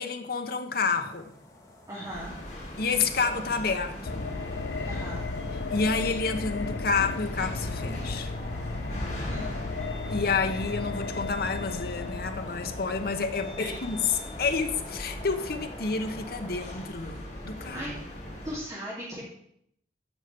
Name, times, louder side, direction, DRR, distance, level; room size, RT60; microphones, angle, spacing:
voice 1, 0.0-1.3 2.8-4.3 5.7-8.3 10.1-14.0 14.4-17.8, left 4 dB, 60° left, 1.0 m, -29 dB
sound 1, 0.8-16.9, left 1 dB, 15° left, 2.4 m, -49 dB
voice 2, 1.9-2.4 4.8-5.3 9.2-9.5 13.6-13.8 17.7-17.9 18.4-19.2, equal, 20° right, 2.9 m, -37 dB
sound 2, 2.1-18.6, left 1 dB, 40° left, 3.4 m, -40 dB
sound 3, 4.0-15.9 16.2-16.3, left 3 dB, 90° left, 0.7 m, -35 dB
8.0 x 5.8 x 7.8 m
head